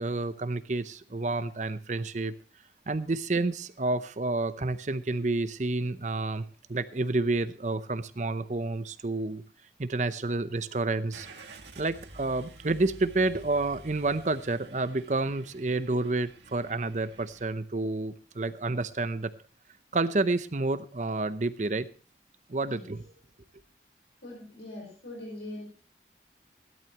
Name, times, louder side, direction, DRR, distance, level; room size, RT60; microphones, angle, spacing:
voice 1, 0.0-2.4 2.9-9.4 9.8-11.3 11.8-19.3 19.9-21.9 22.5-23.1, right 2 dB, 40° right, 13 dB, 0.7 m, -29 dB
Car / Engine starting, 11.1-17.5, right 2 dB, 80° right, 2.0 m, -50 dB
voice 2, 24.2-25.6, left 1 dB, 85° left, -3 dB, 5.1 m, -42 dB
17.0 x 12.0 x 2.9 m, 0.37 s
head